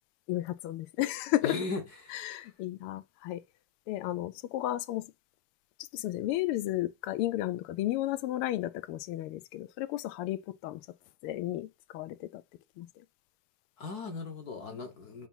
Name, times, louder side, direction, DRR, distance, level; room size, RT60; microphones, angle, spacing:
voice 1, 0.3-1.6 2.1-3.4 3.9-5.1 5.8-10.8 11.2-12.4 12.8-12.9, left 15 dB, 90° left, 1.5 m, -33 dB
voice 2, 1.4-2.5 13.8-15.3, left 3 dB, 55° left, 1.2 m, -38 dB
5.7 x 3.0 x 5.4 m
omnidirectional pair, 2.4 m